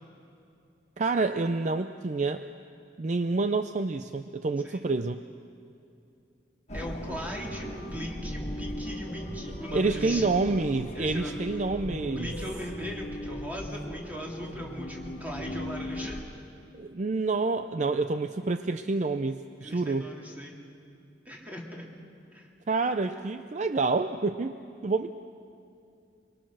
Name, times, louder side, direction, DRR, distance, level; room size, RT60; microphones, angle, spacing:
voice 1, 1.0-2.5 3.0-5.2 9.7-12.3 16.7-20.1 22.7-24.6 24.8-25.1, right 3 dB, 40° right, 9 dB, 0.5 m, -28 dB
sound 1, 6.7-16.2, equal, 35° left, 1.7 m, -38 dB
voice 2, 6.7-10.3 10.9-11.3 12.0-16.2 19.6-20.6 21.2-21.9 22.3-22.5, equal, 10° right, -2 dB, 3.0 m, -39 dB
24.5 x 23.5 x 6.4 m, 2.5 s
head